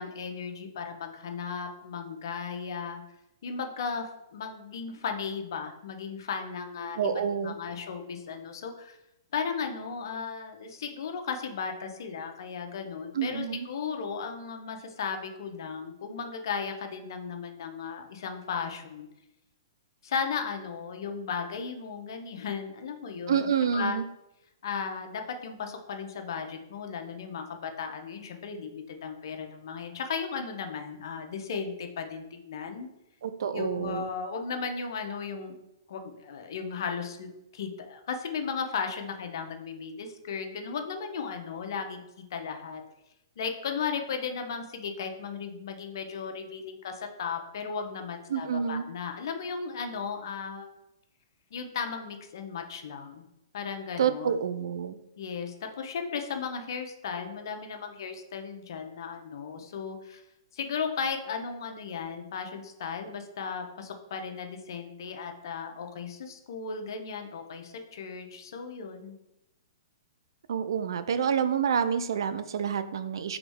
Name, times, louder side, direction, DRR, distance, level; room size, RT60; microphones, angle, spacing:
voice 1, 0.0-3.0 3.4-7.1 7.4-9.0 9.3-19.1 20.0-24.0 24.6-32.9 33.5-35.5 35.9-42.0 42.3-42.8 43.4-50.7 51.5-53.2 53.5-54.4 55.2-60.2 60.5-69.2, left 6 dB, 65° left, 5 dB, 0.8 m, -35 dB
voice 2, 7.0-7.6 13.1-13.7 23.3-24.0 33.2-34.1 48.3-48.9 54.0-54.9 70.5-73.4, right 7 dB, 75° right, 12 dB, 0.4 m, -28 dB
4.9 x 3.1 x 3.5 m, 0.88 s
hypercardioid pair, 145°, 2 cm